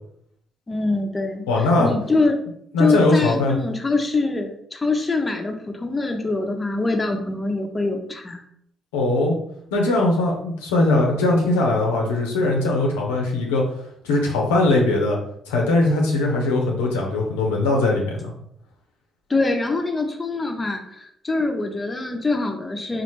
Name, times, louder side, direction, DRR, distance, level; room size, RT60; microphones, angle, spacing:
voice 1, 0.7-1.5 1.8-2.4 2.8-8.4 19.3-23.0, left 3 dB, 25° left, 4 dB, 0.6 m, -24 dB
voice 2, 1.5-1.9 2.7-3.6 8.9-9.4 9.7-13.7 14.0-15.2 15.5-18.3, left 2 dB, 80° left, -1 dB, 0.6 m, -20 dB
4.1 x 2.4 x 3.2 m, 0.71 s
hypercardioid pair, 45°, 0 cm